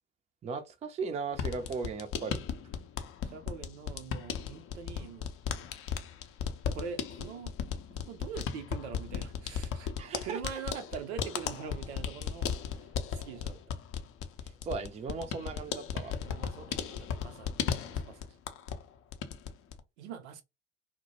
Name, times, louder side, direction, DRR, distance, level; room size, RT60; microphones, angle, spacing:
voice 1, 0.4-2.4 10.0-10.6 14.4-16.2, right 5 dB, 20° right, 0.4 m, -37 dB
sound 1, 1.3-18.9 19.1-19.8, left 7 dB, 40° left, 0.5 m, -36 dB
voice 2, 3.2-5.3 6.7-7.5 8.1-9.9 10.2-12.6 13.1-13.6 16.2-17.5 17.9-18.3 20.0-20.4, right 6 dB, 70° right, 0.6 m, -43 dB
2.1 x 2.0 x 2.8 m
figure-of-eight pair, 65°, 35 cm